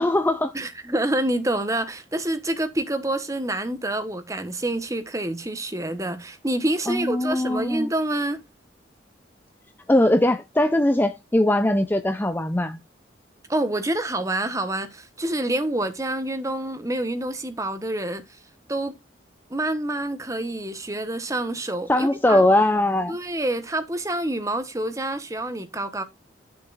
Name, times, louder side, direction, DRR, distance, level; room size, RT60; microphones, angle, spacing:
voice 1, 0.0-0.5 6.9-7.9 9.9-12.8 21.9-23.2, left 1 dB, 10° left, 0.5 m, -20 dB
voice 2, 0.5-8.4 13.5-18.2 18.7-18.9 19.5-22.4 23.1-26.0, right 1 dB, 15° right, 1.2 m, -27 dB
12.5 x 7.0 x 2.5 m
head